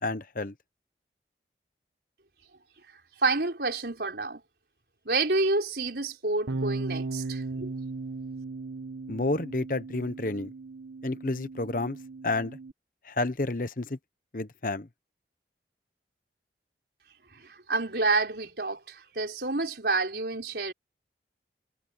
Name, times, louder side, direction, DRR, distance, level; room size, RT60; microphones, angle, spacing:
voice 1, 0.0-0.5 9.1-10.5 11.0-12.0 12.2-12.6 13.0-14.0 14.3-14.9, left 2 dB, 50° left, 1.0 m, -30 dB
voice 2, 3.2-4.4 5.0-7.7 17.3-20.7, right 3 dB, 65° right, 4.3 m, -29 dB
Bass guitar, 6.5-12.7, right 3 dB, 80° right, 1.3 m, -37 dB
head